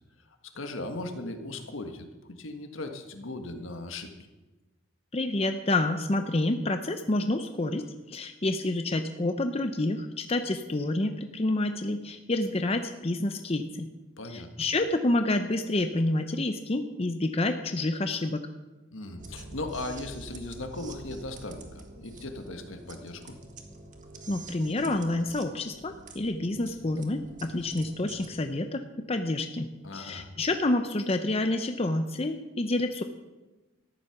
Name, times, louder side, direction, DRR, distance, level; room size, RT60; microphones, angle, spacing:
voice 1, 0.5-4.1 14.2-14.5 18.9-23.4 29.8-30.3, left 2 dB, 75° left, 5 dB, 1.6 m, -38 dB
voice 2, 5.1-13.9 14.3-18.4 24.3-28.8 29.1-33.0, left 2 dB, 30° left, 7 dB, 0.6 m, -28 dB
sound 1, 19.2-28.3, right 3 dB, 40° right, 1.6 m, -47 dB
14.0 x 10.5 x 6.0 m, 1.1 s
head